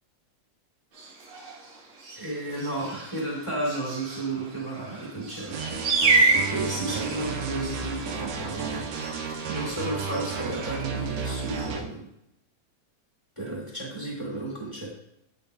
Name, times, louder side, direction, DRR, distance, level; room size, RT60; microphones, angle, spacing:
sound 1, 0.9-11.8, right 3 dB, 55° right, 1.7 m, -30 dB
voice 1, 2.1-9.1 9.5-12.0 13.3-14.9, right 2 dB, 15° left, -5 dB, 1.3 m, -33 dB
sound 2, 5.5-11.8, right 5 dB, 80° right, 2.0 m, -33 dB
8.7 x 5.4 x 2.2 m, 0.81 s
omnidirectional pair, 3.4 m